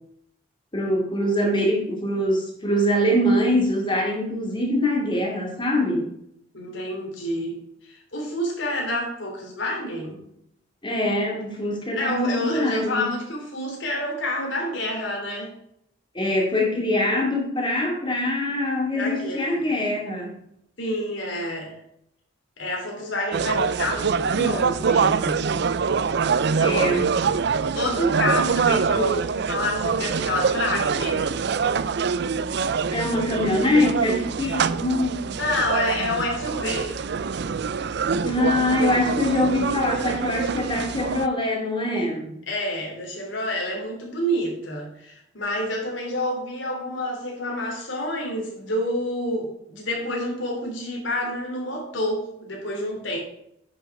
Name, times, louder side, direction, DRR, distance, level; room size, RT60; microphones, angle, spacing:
voice 1, 0.7-6.1 10.8-13.1 16.1-20.4 26.6-27.2 28.3-28.4 32.9-35.3 38.2-42.4, left 1 dB, 25° left, 0 dB, 2.4 m, -23 dB
voice 2, 6.5-7.6 7.8-10.2 11.9-15.5 18.9-19.7 20.8-21.7 22.6-25.4 27.8-31.3 35.4-36.9 42.5-53.2, left 1 dB, 75° left, 0 dB, 3.3 m, -28 dB
sound 1, 23.3-41.3, right 5 dB, 60° right, 0.4 m, -25 dB
9.9 x 6.3 x 4.8 m, 0.74 s
head